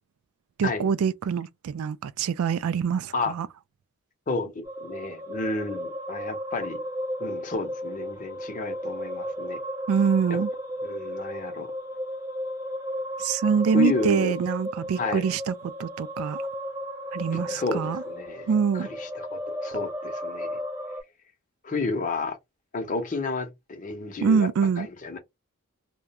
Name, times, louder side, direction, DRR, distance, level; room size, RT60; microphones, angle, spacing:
voice 1, 0.6-3.5 9.9-10.5 13.2-15.5 15.8-16.4 17.1-18.0 18.5-18.9 24.2-24.9, right 6 dB, 75° right, 0.3 m, -25 dB
voice 2, 4.3-6.8 7.2-9.6 10.3-10.4 10.8-11.7 13.7-14.3 15.0-15.3 17.3-20.6 21.6-22.4 22.7-24.5 24.8-25.2, left 3 dB, 35° left, 0.7 m, -31 dB
sound 1, 4.6-21.0, equal, 15° right, 0.6 m, -34 dB
2.3 x 2.2 x 2.8 m
head